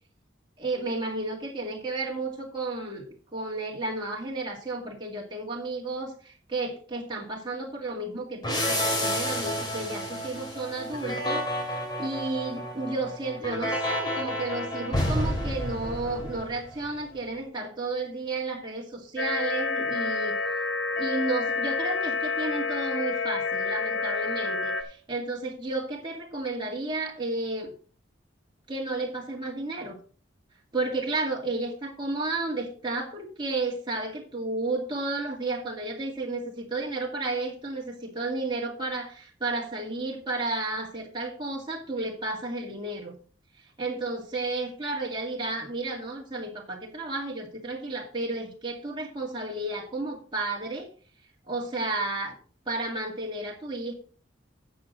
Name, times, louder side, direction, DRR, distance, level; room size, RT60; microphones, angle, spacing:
voice 1, 0.6-3.1 3.3-11.7 12.0-20.6 21.0-27.7 28.7-30.0 30.7-43.1 43.6-50.9 51.5-52.4 52.7-53.9, right 2 dB, 25° right, -2 dB, 2.2 m, -32 dB
sound 1, 8.4-16.9, equal, 20° left, 2.9 m, -30 dB
sound 2, 19.2-24.8, left 4 dB, 80° left, 1.7 m, -29 dB
12.5 x 7.8 x 3.9 m, 0.40 s
head